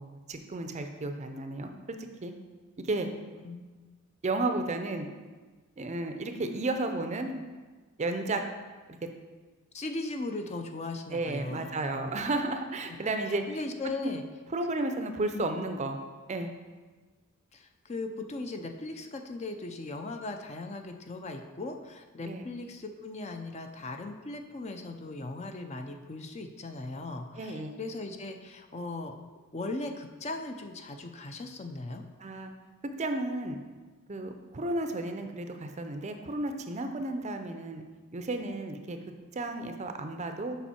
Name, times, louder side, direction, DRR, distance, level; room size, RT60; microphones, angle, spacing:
voice 1, 0.0-1.7 2.2-2.3 2.8-3.1 4.2-5.1 5.8-7.4 8.0-8.4 11.1-13.4 14.0-14.1 14.5-16.0 16.3-16.5 22.2-22.4 27.3-27.8 32.2-32.5 33.0-33.6 34.1-37.8 38.1-39.0 39.3-40.6, right 2 dB, 30° right, 6 dB, 0.5 m, -33 dB
voice 2, 9.7-12.2 13.3-14.2 15.3-15.5 17.5-29.2 29.5-32.0, left 2 dB, 30° left, 6 dB, 0.5 m, -38 dB
7.2 x 5.4 x 4.3 m, 1.3 s
head